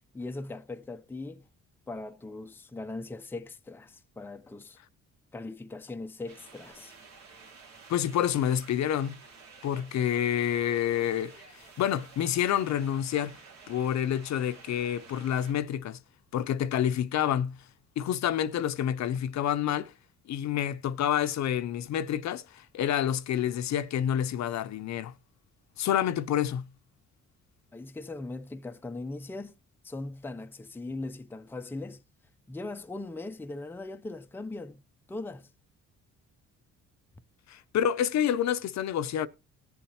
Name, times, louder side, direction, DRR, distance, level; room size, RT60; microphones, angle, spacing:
voice 1, 0.1-1.5 1.9-4.8 5.3-6.9 27.7-29.6 29.8-32.0 32.5-34.8 35.1-35.5, left 2 dB, 5° left, 0.5 m, -39 dB
sound 1, 6.3-15.5, right 5 dB, 65° right, 2.2 m, -52 dB
voice 2, 7.9-9.1 9.6-13.4 13.7-16.0 16.3-17.6 18.0-19.9 20.3-25.1 25.8-26.7 37.5-39.3, left 10 dB, 65° left, 0.7 m, -28 dB
18.0 x 7.1 x 2.9 m
cardioid pair, 90°, 30 cm